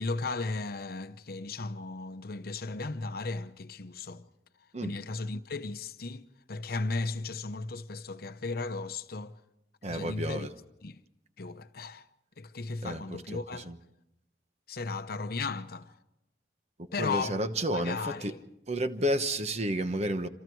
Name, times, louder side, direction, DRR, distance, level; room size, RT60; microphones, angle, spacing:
voice 1, 0.0-4.3 4.8-9.4 9.9-10.5 10.8-11.0 11.4-12.1 12.4-13.7 14.7-16.0 16.9-17.4 17.7-18.4, left 3 dB, 55° left, 0.9 m, -35 dB
voice 2, 9.8-10.5 12.8-13.0 13.3-13.8 17.0-18.3 18.7-20.3, right 1 dB, 40° right, 1.1 m, -31 dB
27.0 x 27.0 x 4.7 m
head